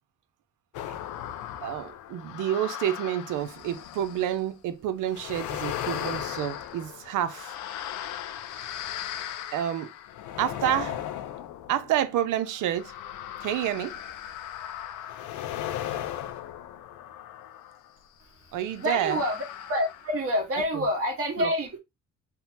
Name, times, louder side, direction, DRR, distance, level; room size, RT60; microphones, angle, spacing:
sound 1, 0.7-4.4 5.1-17.9 18.7-20.3 20.6-20.7, left 11 dB, 80° left, 0.5 m, -37 dB
voice 1, 1.6-7.6 9.5-9.9 10.4-11.0 11.7-13.0 13.4-14.0 18.5-19.2 20.7-20.8 21.4-21.5, right 11 dB, 85° right, 0.6 m, -29 dB
voice 2, 18.8-19.4 19.7-21.8, equal, 50° right, 1.5 m, -27 dB
3.4 x 2.1 x 2.8 m
cardioid pair, 90°, 30 cm